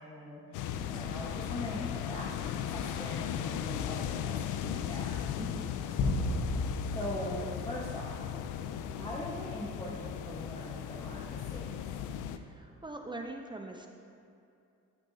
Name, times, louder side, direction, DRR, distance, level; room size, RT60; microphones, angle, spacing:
voice 1, 0.0-5.2 6.9-8.2 8.9-11.6, left 1 dB, 15° left, -6 dB, 1.3 m, -41 dB
sound 1, 0.5-12.4, left 9 dB, 90° left, 0.5 m, -37 dB
voice 2, 5.4-5.7 12.3-13.9, right 2 dB, 15° right, 2 dB, 0.6 m, -43 dB
sound 2, 6.0-8.6, left 2 dB, 75° left, 1.1 m, -34 dB
13.5 x 6.9 x 2.8 m, 2.6 s
cardioid pair, 90°, 30 cm